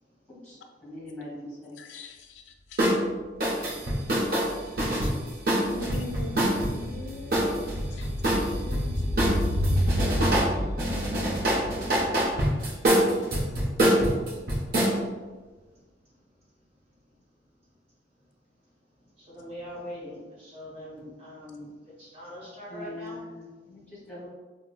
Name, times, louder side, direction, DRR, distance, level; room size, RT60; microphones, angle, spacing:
voice 1, 0.4-1.8 22.7-24.3, left 1 dB, 5° left, -7 dB, 1.5 m, -42 dB
voice 2, 1.8-2.8 5.0-5.1 5.7-7.5 7.9-9.0 9.6-11.4, left 3 dB, 85° left, 4 dB, 0.3 m, -43 dB
sound 1, 2.8-3.0 3.4-6.7 7.3-8.8 9.2-10.5 10.8-14.9, right 1 dB, 55° right, 0.7 m, -25 dB
sound 2, 3.2-3.3 3.5-13.9 14.1-14.2, equal, 85° right, 0.9 m, -31 dB
voice 3, 19.2-23.2, equal, 35° right, -7 dB, 1.1 m, -42 dB
4.7 x 2.0 x 2.3 m, 1.3 s
head